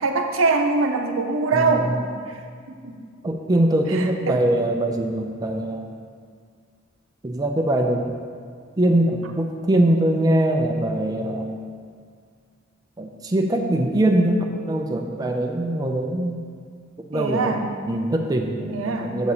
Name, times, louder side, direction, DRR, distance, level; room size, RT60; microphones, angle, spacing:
voice 1, 0.0-1.9 2.8-2.9 3.9-4.4 17.1-17.7 18.7-19.1, right 3 dB, 85° right, 4 dB, 0.7 m, -23 dB
voice 2, 1.5-2.0 3.2-5.9 7.2-8.1 8.8-11.6 13.0-16.4 17.1-17.6 17.9-19.3, right 1 dB, 20° right, 2 dB, 0.4 m, -22 dB
6.9 x 4.1 x 6.6 m, 2.1 s
head